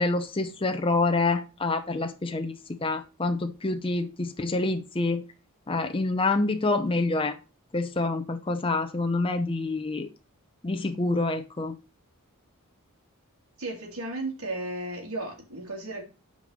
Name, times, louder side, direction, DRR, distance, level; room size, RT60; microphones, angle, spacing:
voice 1, 0.0-2.5 2.8-5.2 5.7-7.3 7.7-10.1 10.6-11.7, left 3 dB, 25° left, 0.7 m, -27 dB
voice 2, 13.6-16.0, right 2 dB, 75° right, 3.0 m, -34 dB
8.0 x 5.3 x 6.5 m
head